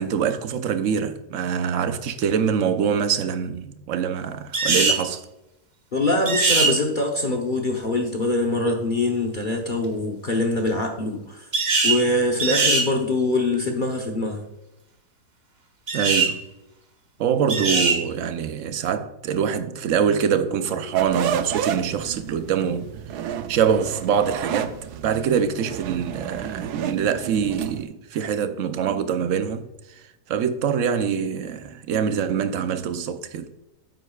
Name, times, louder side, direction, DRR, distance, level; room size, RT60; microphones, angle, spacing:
voice 1, 0.0-5.2 15.9-16.4 17.2-22.9 23.5-24.7 25.0-29.7 30.3-33.5, right 7 dB, 60° right, 0.9 m, -24 dB
sound 1, 4.5-5.0 6.3-6.7 11.5-12.0 12.4-12.9 15.9-16.3 17.5-18.0, right 4 dB, 35° right, 0.9 m, -21 dB
voice 2, 5.9-11.5 11.8-14.4, left 2 dB, 40° left, 0.9 m, -23 dB
sound 2, 20.9-27.9, right 8 dB, 80° right, 1.2 m, -31 dB
9.2 x 7.8 x 2.3 m
omnidirectional pair, 1.7 m